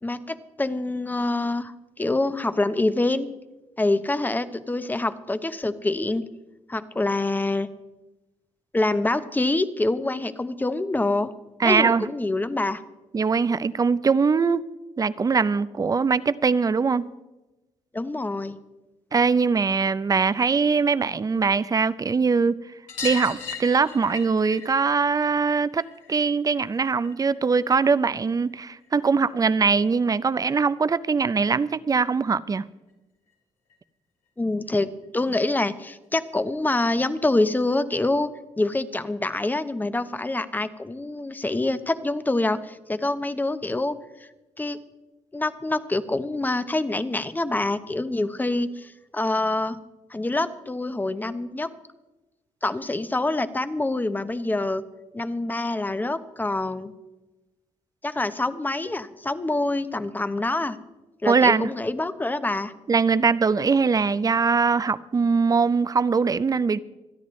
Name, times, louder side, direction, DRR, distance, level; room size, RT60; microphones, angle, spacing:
voice 1, 0.0-3.3 3.8-6.2 6.7-7.7 8.7-11.3 11.6-12.8 17.9-18.6 34.4-34.9 35.1-38.3 38.6-44.3 44.6-44.8 45.3-49.8 50.1-51.7 52.6-54.8 55.1-56.9 58.0-60.8 61.2-62.7, left 2 dB, 15° left, 0.8 m, -26 dB
voice 2, 11.6-12.0 13.1-14.6 15.0-17.1 19.1-22.6 23.0-32.7 61.2-61.7 62.9-66.8, right 5 dB, 30° right, 0.5 m, -22 dB
sound 1, 22.9-28.0 28.3-29.4 30.8-30.9 31.1-31.2 31.5-31.6 32.9-33.0 33.3-33.4 33.7-33.8 35.0-35.1 35.9-36.0, left 5 dB, 90° left, 3.4 m, -39 dB
26.5 x 9.9 x 3.2 m
cardioid pair, 80°, 12 cm